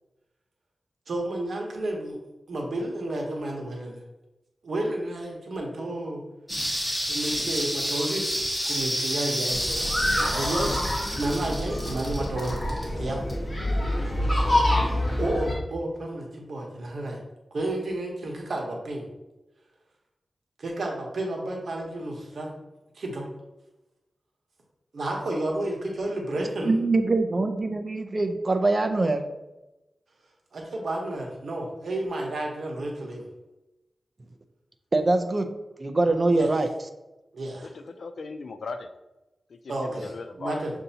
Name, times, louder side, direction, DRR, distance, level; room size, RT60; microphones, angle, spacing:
voice 1, 1.1-2.2 2.5-4.0 4.6-6.2 7.1-8.3 8.6-9.6 10.3-10.8 11.1-12.6 12.9-13.2 15.2-17.2 17.5-19.0 20.6-22.5 23.0-23.2 24.9-26.7 30.5-33.3 36.3-36.5 37.3-37.7 39.7-40.7, right 1 dB, 70° right, 0 dB, 1.0 m, -31 dB
sound 1, 6.5-13.5 13.9-14.0, equal, 5° left, 1.2 m, -30 dB
sound 2, 9.5-15.5, left 1 dB, 40° left, 1.3 m, -27 dB
voice 2, 26.6-29.2 34.9-35.5 35.8-36.7, right 2 dB, 35° right, 6 dB, 0.4 m, -23 dB
voice 3, 37.6-38.9 39.5-40.6, left 4 dB, 70° left, 8 dB, 0.4 m, -38 dB
6.7 x 2.6 x 2.8 m, 1.0 s
wide cardioid pair, 115°, 0 cm